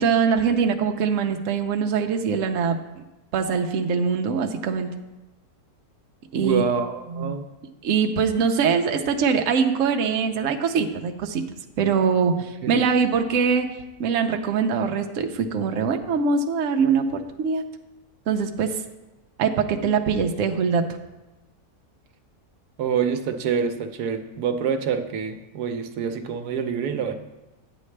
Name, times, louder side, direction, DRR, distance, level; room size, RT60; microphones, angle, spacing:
voice 1, 0.0-3.0 3.3-4.9 6.3-6.6 7.1-7.3 7.8-11.4 11.8-13.7 14.0-17.6 18.3-18.7 19.4-20.8, right 6 dB, 65° right, 4 dB, 0.9 m, -23 dB
voice 2, 6.3-7.5 12.6-12.8 22.8-27.1, right 7 dB, 85° right, 7 dB, 1.2 m, -26 dB
9.9 x 8.3 x 3.3 m, 1.0 s
omnidirectional pair, 1.6 m